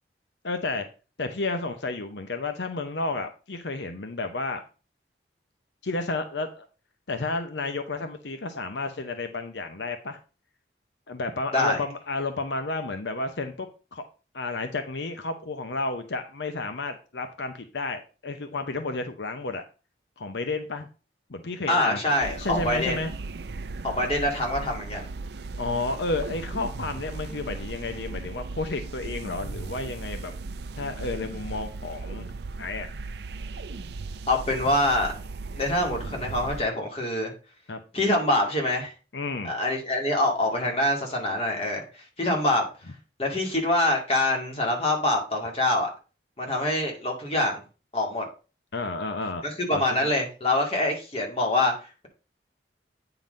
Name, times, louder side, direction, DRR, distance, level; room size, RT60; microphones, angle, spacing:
voice 1, 0.4-0.9 1.2-4.6 5.8-6.7 7.1-10.2 11.1-14.0 14.3-19.6 20.2-20.9 21.3-22.0 22.4-23.1 25.6-30.3 30.8-32.3 32.6-32.9 37.7-37.8 39.1-39.5 48.7-49.4 49.7-50.1, left 3 dB, 85° left, 7 dB, 0.8 m, -31 dB
voice 2, 21.7-23.0 23.8-25.1 34.3-35.1 35.5-37.3 37.9-38.9 39.4-42.7 43.2-45.9 46.4-47.6 47.9-48.3 49.4-52.1, left 1 dB, 35° left, 1 dB, 2.1 m, -25 dB
sound 1, 22.2-36.7, right 3 dB, 70° right, 0.5 m, -37 dB
9.0 x 3.9 x 5.2 m, 0.34 s
head